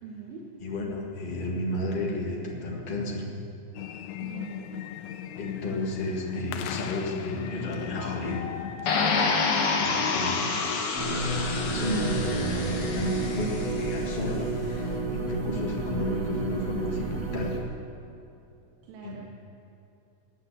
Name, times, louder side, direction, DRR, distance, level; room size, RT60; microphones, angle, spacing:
voice 1, 0.0-0.5 4.2-4.8 18.9-19.2, right 6 dB, 85° right, -1 dB, 3.1 m, -43 dB
voice 2, 0.6-3.2 5.4-8.5 9.8-10.6 11.3-17.6 19.0-19.2, left 1 dB, 35° left, -1 dB, 0.8 m, -32 dB
sound 1, 3.7-9.5, left 10 dB, 80° left, 1.7 m, -37 dB
sound 2, 8.9-13.9, left 4 dB, 55° left, 1.7 m, -28 dB
sound 3, 11.0-17.6, right 3 dB, 35° right, 1.6 m, -31 dB
15.5 x 9.1 x 8.1 m, 2.8 s
omnidirectional pair, 4.1 m